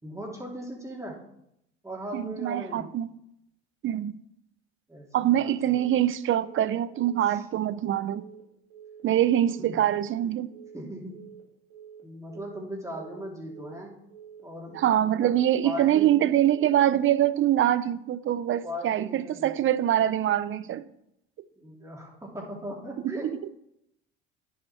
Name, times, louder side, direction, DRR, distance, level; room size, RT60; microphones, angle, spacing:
voice 1, 0.0-1.2 1.8-2.9 4.9-5.8 7.2-7.4 9.6-9.8 10.3-10.5 10.7-11.2 12.0-13.9 14.4-15.3 15.6-16.2 18.6-19.7 21.6-23.3, equal, 10° right, 3.6 m, -39 dB
voice 2, 2.1-3.1 3.8-4.2 5.1-8.3 9.0-10.5 14.7-20.8 23.0-23.4, right 11 dB, 40° right, 0.7 m, -24 dB
Telephone, 5.7-6.0 6.3-6.6 6.9-7.2 7.5-7.8 8.1-8.4 8.7-9.0 9.3-9.6 9.9-10.2 10.5-10.8 11.1-11.4 11.7-12.0 12.3-12.6 12.9-13.2 13.5-13.8 14.1-14.4 14.7-15.0 15.3-15.6 15.9-16.2 16.5-16.8, right 8 dB, 75° right, 3.2 m, -48 dB
10.0 x 8.0 x 4.6 m
hypercardioid pair, 80°, 32 cm